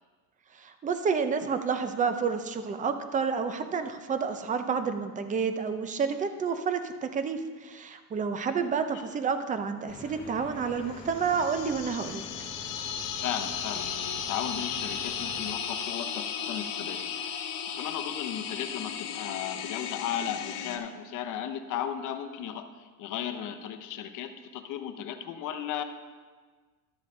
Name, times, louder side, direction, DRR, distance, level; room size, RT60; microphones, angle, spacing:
voice 1, 0.5-12.3, right 5 dB, 20° right, 9 dB, 0.5 m, -30 dB
sound 1, 9.9-15.5, left 2 dB, 10° left, 1.1 m, -46 dB
sound 2, 11.0-20.8, left 7 dB, 65° left, 1.1 m, -35 dB
voice 2, 13.2-17.4 17.7-22.7 23.0-25.8, left 9 dB, 45° left, 7 dB, 0.8 m, -35 dB
12.5 x 7.4 x 3.7 m, 1.4 s
cardioid pair, 135°, 44 cm